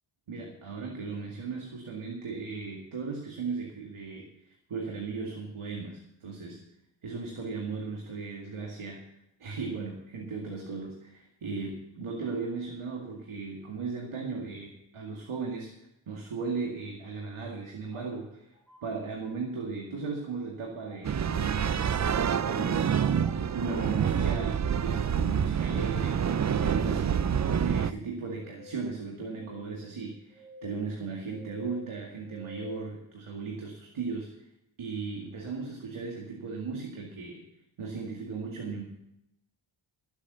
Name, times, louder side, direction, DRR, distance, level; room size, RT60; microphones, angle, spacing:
voice 1, 0.3-6.6 7.0-9.0 9.4-15.7 16.1-18.5 18.8-22.0 22.4-23.2 23.5-26.2 26.5-34.3 34.8-37.4 37.8-38.8, right 4 dB, 85° right, 0 dB, 2.2 m, -37 dB
sound 1, 17.9-18.9 19.8-20.3 20.8-21.1 21.5-24.5 26.2-26.5 27.3-27.9 28.3-28.9 29.3-32.8, left 2 dB, 5° left, 4.4 m, -50 dB
sound 2, 21.0-27.9, right 8 dB, 40° right, 0.4 m, -27 dB
13.5 x 8.3 x 6.8 m, 0.84 s
wide cardioid pair, 145°, 48 cm